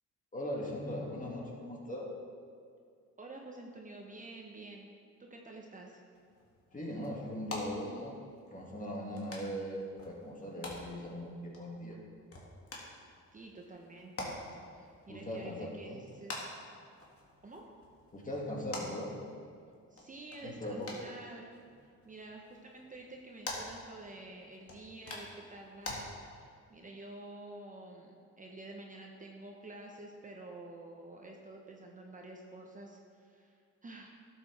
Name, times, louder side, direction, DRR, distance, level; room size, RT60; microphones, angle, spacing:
voice 1, 0.3-2.1 6.7-8.2 8.5-12.0 15.1-16.0 18.1-19.1 20.4-21.0, equal, 25° left, -2 dB, 2.2 m, -39 dB
voice 2, 3.2-4.9 5.2-6.0 13.3-14.4 14.7-16.6 17.4-17.7 19.9-21.5 21.8-34.1, right 2 dB, 25° right, 1 dB, 1.0 m, -49 dB
sound 1, 6.1-26.0, left 2 dB, 50° left, 2.1 m, -48 dB
12.0 x 7.7 x 3.5 m, 2.2 s
cardioid pair, 90°, 30 cm